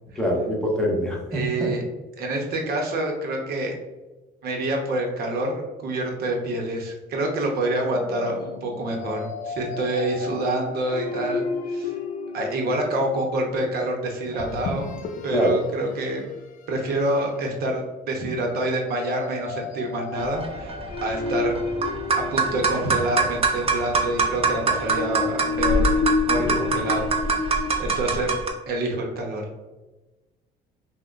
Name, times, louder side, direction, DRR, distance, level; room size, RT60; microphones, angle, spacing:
voice 1, 0.1-1.7 15.3-15.5 26.4-26.6, equal, 5° left, -3 dB, 1.0 m, -24 dB
voice 2, 1.3-1.8 2.2-3.8 4.4-11.9 12.3-14.9 15.2-16.3 16.7-21.5 22.2-25.9 26.3-27.1 27.8-28.3 28.7-29.4, right 1 dB, 65° right, 1 dB, 0.8 m, -27 dB
sound 1, 7.9-13.2 14.3-15.6 16.0-16.2 16.8-17.3 18.9-23.4 24.6-27.7, left 5 dB, 55° left, 0.5 m, -31 dB
sound 2, 20.2-28.5, right 4 dB, 35° right, 0.6 m, -24 dB
5.6 x 2.1 x 2.5 m, 1.1 s
cardioid pair, 110°, 17 cm